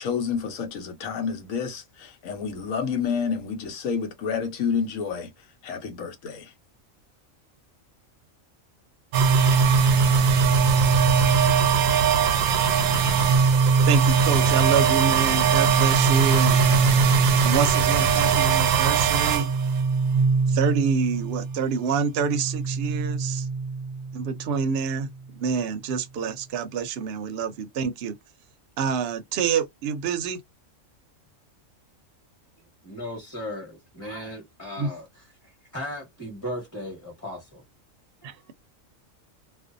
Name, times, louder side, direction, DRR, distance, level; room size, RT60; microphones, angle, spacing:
voice 1, 0.0-5.3 5.6-6.5, left 6 dB, 85° left, 1.2 m, -29 dB
sound 1, 9.1-21.8 22.1-24.6, right 5 dB, 90° right, 1.0 m, -20 dB
voice 2, 13.9-16.6 17.4-19.5 20.5-23.5 24.1-28.2 28.8-30.4 34.8-34.9 38.2-38.3, right 6 dB, 60° right, 0.7 m, -27 dB
voice 3, 32.8-37.6, left 1 dB, 15° left, 1.2 m, -37 dB
2.5 x 2.2 x 2.5 m
omnidirectional pair, 1.4 m